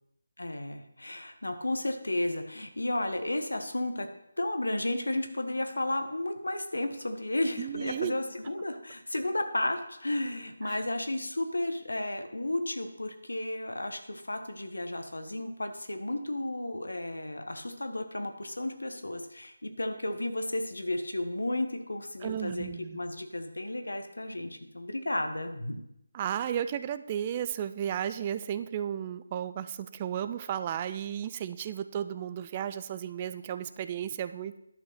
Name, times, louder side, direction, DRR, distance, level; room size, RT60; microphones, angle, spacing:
voice 1, 0.4-4.1 4.4-22.7 22.9-25.8, left 1 dB, 80° left, 7 dB, 1.3 m, -33 dB
voice 2, 7.6-8.2 10.6-10.8 22.2-23.0 26.1-34.6, right 9 dB, 25° right, 12 dB, 0.4 m, -34 dB
11.0 x 5.3 x 5.9 m, 0.81 s
figure-of-eight pair, 160°, 0 cm